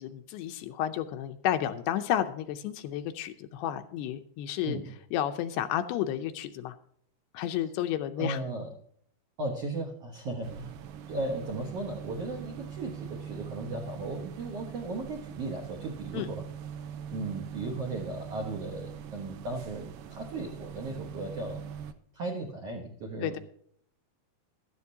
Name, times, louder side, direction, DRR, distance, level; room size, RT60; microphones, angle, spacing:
voice 1, 0.0-4.8 5.1-6.7 7.3-8.4 16.1-16.3 23.2-23.4, left 11 dB, 80° left, 8 dB, 2.5 m, -31 dB
voice 2, 8.2-8.7 9.4-10.8 11.1-16.4 17.1-21.6 22.1-23.4, right 2 dB, 70° right, 0 dB, 1.5 m, -36 dB
sound 1, 10.4-21.9, right 8 dB, 90° right, 1.9 m, -42 dB
14.5 x 12.0 x 2.8 m, 0.63 s
omnidirectional pair, 4.9 m